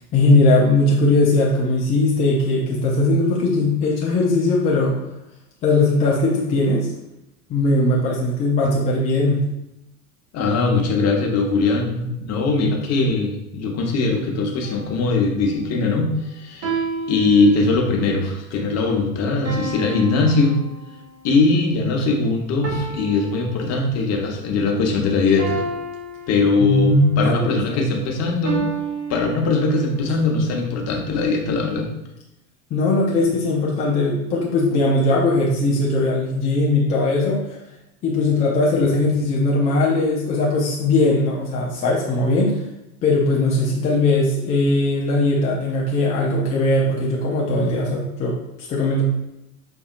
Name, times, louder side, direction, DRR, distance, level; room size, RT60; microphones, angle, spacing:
voice 1, 0.1-5.0 5.6-6.9 7.5-9.4 26.6-27.4 27.7-28.0 32.7-37.4 38.0-42.6 43.0-49.0, left 2 dB, 20° left, -4 dB, 0.3 m, -19 dB
voice 2, 10.3-20.6 21.2-25.6 26.3-28.7 29.1-31.9, left 3 dB, 35° left, 1 dB, 0.8 m, -21 dB
sound 1, 14.6-15.1 16.6-18.1 19.5-21.3 22.6-24.2 25.4-27.0 28.5-30.0, right 3 dB, 30° right, 0.9 m, -31 dB
5.1 x 2.6 x 2.4 m, 0.87 s
figure-of-eight pair, 80°, 47 cm